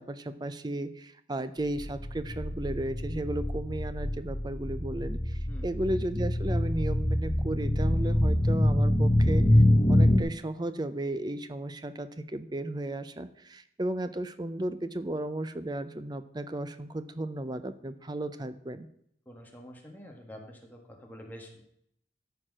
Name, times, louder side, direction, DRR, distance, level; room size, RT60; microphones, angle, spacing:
voice 1, 0.0-9.6 9.9-18.9, right 1 dB, 20° right, 11 dB, 0.5 m, -34 dB
sound 1, 1.8-10.2, left 1 dB, 30° left, 0.8 m, -25 dB
voice 2, 5.5-5.9 19.2-21.6, equal, 10° left, 1 dB, 1.6 m, -47 dB
13.5 x 4.7 x 6.1 m, 0.72 s
head